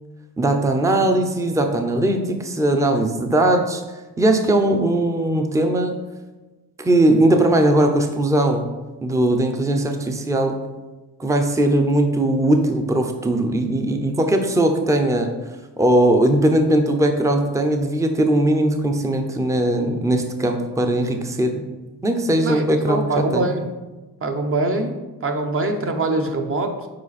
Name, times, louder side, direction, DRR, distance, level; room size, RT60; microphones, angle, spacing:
voice 1, 0.4-3.8 4.2-5.9 6.8-8.7 9.0-10.5 11.2-15.3 15.8-21.6 22.0-23.4, right 1 dB, 10° right, 5 dB, 0.6 m, -19 dB
voice 2, 22.4-23.7 24.2-24.9 25.2-26.9, right 2 dB, 35° right, 5 dB, 0.9 m, -23 dB
7.6 x 4.9 x 4.2 m, 1.2 s
cardioid pair, 130°, 38 cm